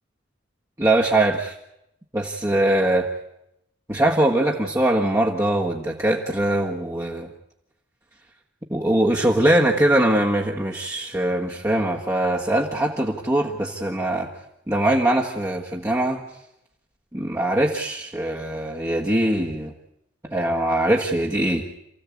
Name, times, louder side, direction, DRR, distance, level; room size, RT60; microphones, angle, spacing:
voice 1, 0.8-1.5 2.1-3.1 3.9-7.3 8.7-14.3 14.7-16.2 17.1-19.7 20.3-21.6, right 1 dB, 15° right, -3 dB, 1.6 m, -22 dB
28.0 x 15.0 x 8.5 m, 0.84 s
head